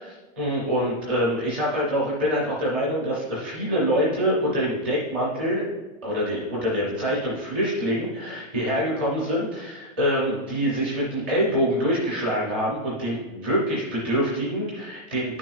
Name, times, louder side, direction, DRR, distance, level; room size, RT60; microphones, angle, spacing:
voice 1, 0.0-5.7 6.0-15.4, equal, 10° right, -5 dB, 0.4 m, -25 dB
11.0 x 6.1 x 2.3 m, 1.2 s
hypercardioid pair, 170°, 41 cm